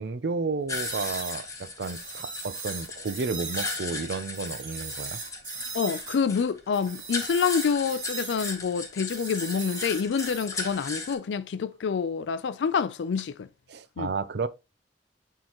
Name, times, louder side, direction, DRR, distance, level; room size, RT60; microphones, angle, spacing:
voice 1, 0.0-5.2 13.7-14.5, right 4 dB, 70° right, 0.5 m, -32 dB
sound 1, 0.7-11.1, left 3 dB, 20° left, 1.1 m, -37 dB
sound 2, 0.7-3.8 4.3-6.2 6.7-8.5 9.1-10.5, right 5 dB, 50° right, 1.8 m, -38 dB
voice 2, 5.7-13.5 14.0-14.1, left 6 dB, 90° left, 0.4 m, -27 dB
8.8 x 3.7 x 2.9 m
head